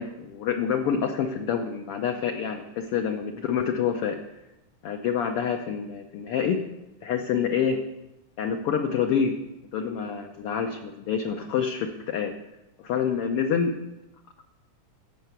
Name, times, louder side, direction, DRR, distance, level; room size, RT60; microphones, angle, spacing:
voice 1, 0.0-4.2 4.8-6.6 7.0-7.8 8.4-9.4 9.7-12.4 12.8-13.8, left 7 dB, 85° left, 4 dB, 1.2 m, -27 dB
15.0 x 5.7 x 8.1 m, 0.95 s
omnidirectional pair, 3.6 m